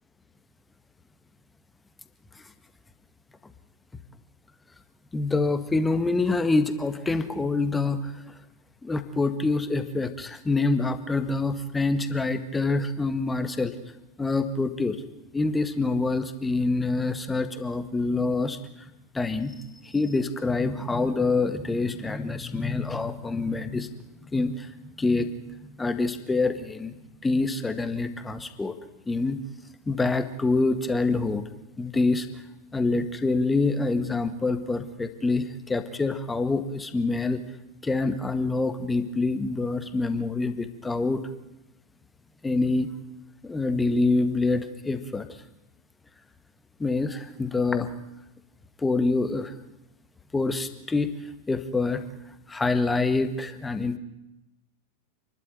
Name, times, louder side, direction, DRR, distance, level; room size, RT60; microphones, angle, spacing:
voice 1, 5.1-8.3 8.8-13.7 14.2-15.0 15.3-18.6 19.1-23.9 24.3-24.7 25.0-25.3 25.8-26.9 27.2-28.8 29.1-29.4 29.9-31.4 31.8-32.4 32.7-37.4 37.8-41.2 42.4-42.9 43.4-45.3 46.8-47.9 48.8-49.5 50.3-51.1 51.5-52.0 52.5-54.0, left 3 dB, 10° left, 10 dB, 1.8 m, -26 dB
28.5 x 12.0 x 9.1 m, 0.92 s
figure-of-eight pair, 90°, 0 cm